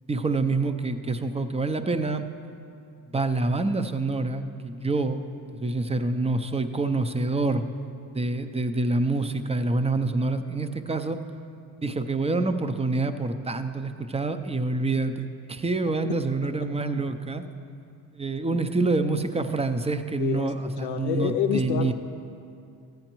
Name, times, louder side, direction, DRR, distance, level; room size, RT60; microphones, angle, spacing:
voice 1, 0.1-2.2 3.1-5.2 5.5-7.6 8.1-11.2 11.8-17.4 18.1-21.9, right 3 dB, 15° right, 9 dB, 0.5 m, -26 dB
voice 2, 20.2-21.9, left 9 dB, 85° left, 4 dB, 0.6 m, -28 dB
14.5 x 9.1 x 3.0 m, 2.5 s
supercardioid pair, 55°, 46 cm